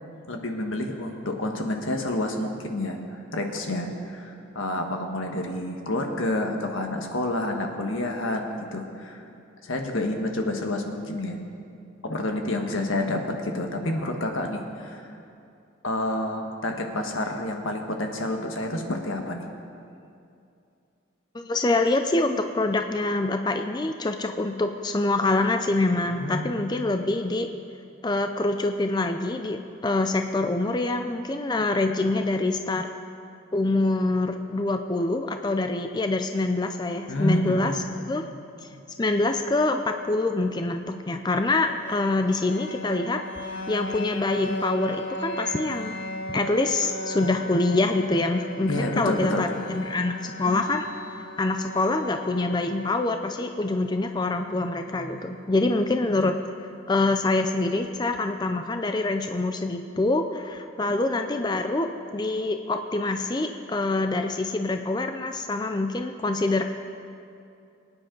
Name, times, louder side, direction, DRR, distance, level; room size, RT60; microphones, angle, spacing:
voice 1, 0.3-9.3 9.6-11.4 12.0-15.1 15.8-19.5 26.0-26.5 37.1-37.8 38.7-38.8 48.7-49.5 50.4-50.7, left 1 dB, 85° left, 3 dB, 1.5 m, -29 dB
voice 2, 21.3-27.5 28.0-32.9 33.5-37.7 38.1-38.3 38.6-38.7 39.0-43.2 43.7-46.0 46.3-50.9 51.4-56.3 56.9-66.6, left 2 dB, 20° left, 6 dB, 0.4 m, -25 dB
sound 1, 41.4-55.3, left 1 dB, 60° left, 1.3 m, -38 dB
23.0 x 9.8 x 3.9 m, 2.6 s
head